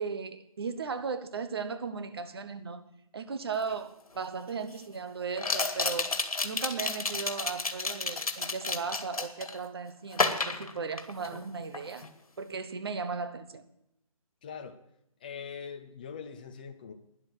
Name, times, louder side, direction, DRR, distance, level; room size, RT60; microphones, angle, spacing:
voice 1, 0.0-2.8 3.1-6.1 6.4-12.1 12.4-13.6, right 5 dB, 45° right, 1.1 m, -36 dB
sound 1, 3.7-3.8 5.4-9.6 10.1-11.4 11.7-12.1, left 3 dB, 85° left, 2.0 m, -31 dB
voice 2, 14.4-14.8 15.2-16.9, left 6 dB, 15° left, 0.6 m, -42 dB
12.5 x 10.5 x 6.4 m
hypercardioid pair, 165°, 18 cm